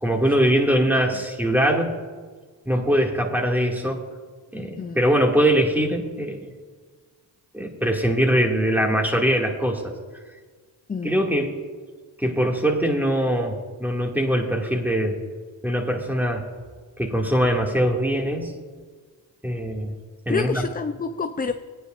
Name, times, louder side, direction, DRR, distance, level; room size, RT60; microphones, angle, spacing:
voice 1, 0.0-1.9 2.7-4.0 4.5-6.5 7.5-9.9 11.0-11.5 12.2-15.2 15.6-16.5 17.0-18.5 19.4-19.9 20.3-20.6, equal, 5° right, 0 dB, 2.3 m, -22 dB
voice 2, 20.3-21.5, left 5 dB, 20° left, 8 dB, 0.5 m, -28 dB
20.0 x 9.6 x 2.6 m, 1.5 s
supercardioid pair, 45°, 49 cm